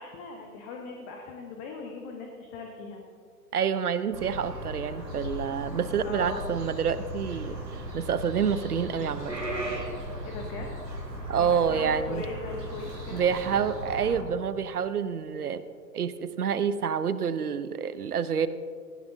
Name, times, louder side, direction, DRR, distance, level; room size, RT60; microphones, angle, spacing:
voice 1, 0.0-3.0 6.0-6.5 10.2-10.7 11.4-13.3, left 4 dB, 15° left, 2 dB, 0.7 m, -40 dB
voice 2, 3.5-9.3 11.3-12.2 13.1-15.6 15.9-18.5, right 7 dB, 65° right, 14 dB, 0.8 m, -28 dB
sound 1, 4.1-14.2, right 1 dB, 90° right, 2.9 m, -37 dB
17.5 x 15.5 x 2.7 m, 2.2 s
figure-of-eight pair, 120°, 48 cm